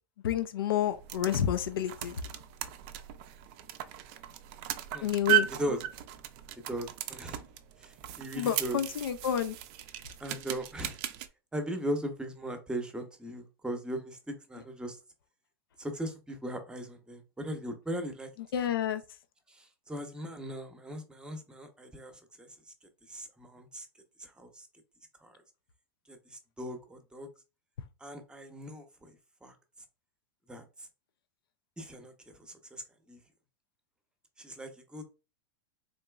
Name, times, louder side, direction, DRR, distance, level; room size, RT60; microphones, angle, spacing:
voice 1, 0.2-2.2 5.0-5.5 8.4-9.5 18.5-19.0, left 10 dB, 85° left, 0.4 m, -29 dB
sound 1, 0.8-11.3, right 13 dB, 50° right, 0.4 m, -36 dB
voice 2, 6.7-7.4 7.8-8.8 10.2-11.0 11.5-15.0 15.8-18.3 18.6-18.9 19.5-23.9 24.2-24.7 25.2-25.4 26.1-27.3 28.0-29.6 30.5-30.9 31.8-32.8 33.1-33.2 34.4-35.0, right 1 dB, 5° right, 0.8 m, -39 dB
3.9 x 2.9 x 2.3 m
hypercardioid pair, 115°, 12 cm